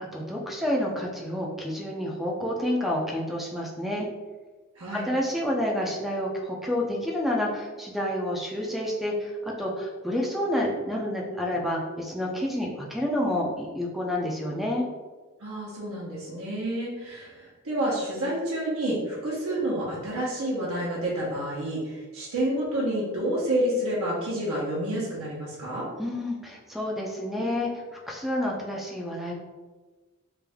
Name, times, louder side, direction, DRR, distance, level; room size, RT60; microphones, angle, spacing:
voice 1, 0.0-4.1 4.9-14.9 26.0-29.3, left 1 dB, ahead, -2 dB, 0.5 m, -29 dB
voice 2, 4.8-5.1 15.4-25.9, right 1 dB, 75° right, -6 dB, 1.0 m, -29 dB
3.4 x 2.6 x 3.5 m, 1.3 s
head